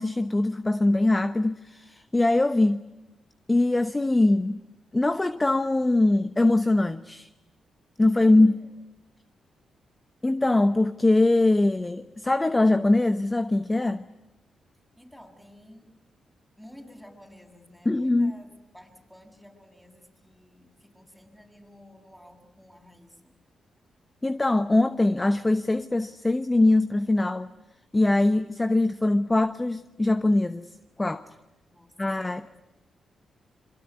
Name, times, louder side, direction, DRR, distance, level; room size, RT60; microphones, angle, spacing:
voice 1, 0.0-2.9 3.5-4.6 4.9-7.3 8.0-8.5 10.2-14.0 17.8-18.4 24.2-27.5 27.9-30.7 31.0-31.2 32.0-32.4, left 2 dB, 20° left, 1.0 m, -22 dB
voice 2, 8.2-8.7 15.0-15.9 16.6-23.3 31.7-32.6, left 1 dB, 5° left, 7.6 m, -52 dB
26.0 x 24.0 x 9.7 m
supercardioid pair, 50°, 0 cm